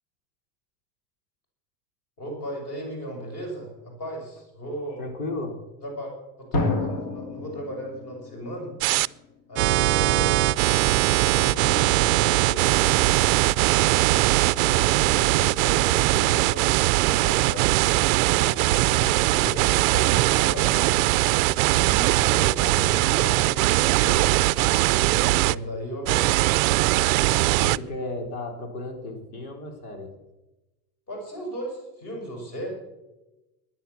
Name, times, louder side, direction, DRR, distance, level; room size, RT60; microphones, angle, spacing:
voice 1, 2.2-5.0 5.8-8.7 9.5-10.5 10.9-13.0 13.8-17.7 18.3-21.0 21.6-24.3 24.9-26.5 31.1-32.7, right 1 dB, 35° left, 1 dB, 6.5 m, -36 dB
voice 2, 5.0-5.6 27.6-30.1, left 2 dB, 75° left, 5 dB, 4.2 m, -34 dB
Drum, 6.5-9.3, left 2 dB, 50° left, 3.0 m, -29 dB
sound 1, 8.8-9.1 9.6-25.5 26.1-27.8, right 19 dB, 70° right, 0.6 m, -21 dB
17.5 x 10.5 x 7.1 m, 1.0 s
supercardioid pair, 165°, 44 cm